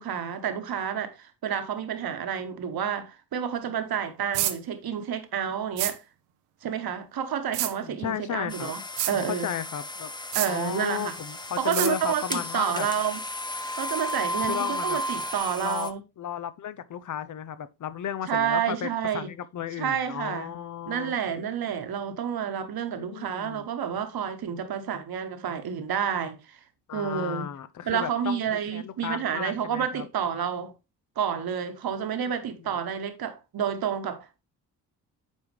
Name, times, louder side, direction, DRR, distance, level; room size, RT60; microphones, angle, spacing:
voice 1, 0.0-6.0 6.6-8.8 9.1-9.5 10.3-11.1 11.6-13.2 13.8-16.0 18.3-19.3 19.8-20.5 20.9-26.6 26.9-27.5 27.9-30.7 31.2-34.4, right 8 dB, 50° right, 1.3 m, -29 dB
sound 1, 4.3-4.6 5.8-5.9 7.5-7.7 9.0-9.1 10.3-10.5 11.7-11.9, right 14 dB, 75° right, 0.8 m, -27 dB
voice 2, 7.8-8.7 9.1-10.1 10.4-12.9 14.4-15.0 15.6-21.1 22.9-23.7 26.9-30.1 32.2-32.3 32.6-32.7, left 9 dB, 40° left, 0.7 m, -34 dB
sound 2, 8.5-15.9, left 1 dB, 10° left, 0.9 m, -34 dB
8.4 x 4.7 x 3.3 m
hypercardioid pair, 40°, 46 cm